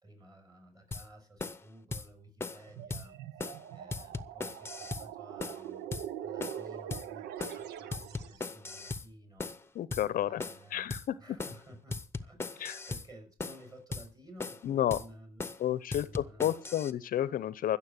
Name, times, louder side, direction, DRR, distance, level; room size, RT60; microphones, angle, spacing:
voice 1, 0.0-5.9 6.2-9.8 10.1-15.5 15.9-16.5, right 1 dB, 20° right, 6 dB, 5.5 m, -54 dB
sound 1, 0.9-1.1 1.4-1.6 1.9-2.1 2.4-2.6 2.9-3.1 3.4-3.6 3.9-5.1 5.4-5.6 5.9-6.1 6.4-6.6 6.9-7.1 7.4-7.6 7.9-9.1 9.4-9.6 9.9-10.1 10.4-10.6 10.9-11.1 11.4-11.6 11.9-13.1 13.4-13.6 13.9-14.1 14.4-14.6 14.9-15.1 15.4-15.6 15.9-16.9, left 3 dB, 15° left, 0.9 m, -38 dB
sound 2, 2.7-8.4, right 10 dB, 80° right, 0.8 m, -43 dB
voice 2, 9.8-10.4 10.7-11.1 12.6-12.8 14.6-15.0 15.6-17.8, left 11 dB, 55° left, 17 dB, 0.7 m, -31 dB
15.0 x 7.2 x 8.2 m, 0.41 s
cardioid pair, 110°, 17 cm